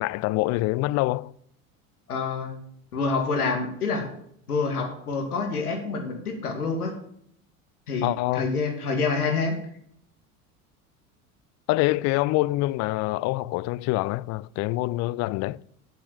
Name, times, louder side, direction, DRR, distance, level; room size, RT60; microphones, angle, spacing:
voice 1, 0.0-1.3 8.0-8.5 11.7-15.6, left 19 dB, 40° left, 0.4 m, -25 dB
voice 2, 2.1-2.5 2.9-4.0 4.5-6.9 7.9-9.6, left 4 dB, 85° left, 2.3 m, -27 dB
8.7 x 8.4 x 6.4 m
hypercardioid pair, 75°, 44 cm